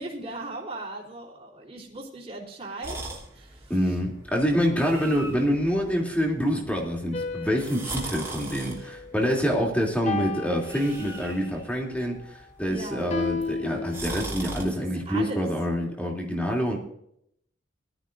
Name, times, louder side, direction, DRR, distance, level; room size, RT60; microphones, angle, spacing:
voice 1, 0.0-3.9 12.7-13.2 14.6-15.5, right 2 dB, 30° right, -7 dB, 3.3 m, -38 dB
sound 1, 2.8-14.6, right 2 dB, 15° right, 3.5 m, -40 dB
voice 2, 3.7-16.8, equal, 5° left, 0 dB, 3.0 m, -26 dB
sound 2, 7.1-9.5 10.1-11.5 13.1-14.6, left 3 dB, 35° left, 1.1 m, -34 dB
20.0 x 13.0 x 2.6 m, 0.73 s
head